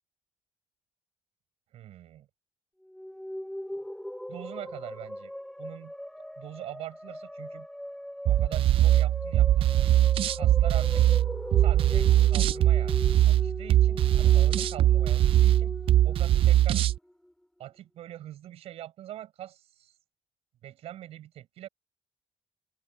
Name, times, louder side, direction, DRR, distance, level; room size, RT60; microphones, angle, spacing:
voice 1, 1.7-2.3 4.3-5.3 5.6-5.9 6.4-7.7 8.2-9.9 10.3-11.1 11.6-12.9 13.3-15.7 16.0-16.8 17.6-20.0 20.6-21.7, right 12 dB, 85° right, 5.7 m, -43 dB
sound 1, 2.8-17.3, equal, 5° left, 6.5 m, -39 dB
sound 2, 8.3-17.0, right 13 dB, 65° right, 0.4 m, -22 dB
open air
cardioid pair, 120°, 10 cm